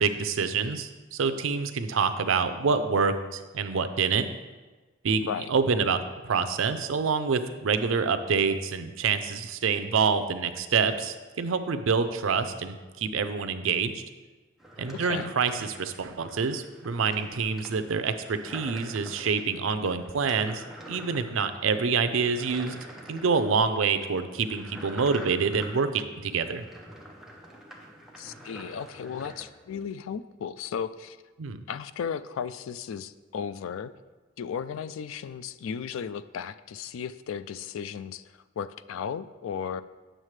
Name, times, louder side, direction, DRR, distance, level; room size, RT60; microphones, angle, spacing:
voice 1, 0.0-4.3 5.0-14.0 14.8-22.7 23.1-26.6 31.4-31.6, right 5 dB, 85° right, 10 dB, 0.5 m, -27 dB
sound 1, 14.6-29.4, right 1 dB, ahead, 0.7 m, -46 dB
voice 2, 14.9-15.3 28.2-31.2 31.7-33.9 34.4-38.2 38.6-39.8, left 7 dB, 85° left, 15 dB, 0.3 m, -35 dB
8.9 x 6.4 x 3.2 m, 1.3 s
head